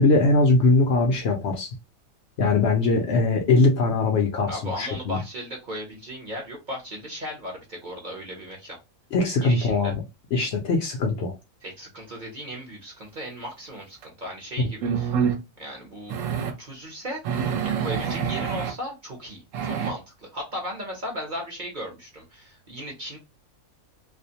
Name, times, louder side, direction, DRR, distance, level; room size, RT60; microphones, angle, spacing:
voice 1, 0.0-1.7 2.4-5.2 9.1-10.0 10.3-11.3 14.6-14.7, left 3 dB, 65° left, 0.8 m, -21 dB
voice 2, 4.5-8.8 9.4-9.9 11.6-15.1 15.6-23.2, equal, 45° right, 0.8 m, -36 dB
sound 1, 14.0-14.1 14.8-15.4 16.1-16.6 17.2-18.7 19.5-19.9, right 7 dB, 75° right, 0.9 m, -26 dB
2.4 x 2.1 x 2.7 m
omnidirectional pair, 1.4 m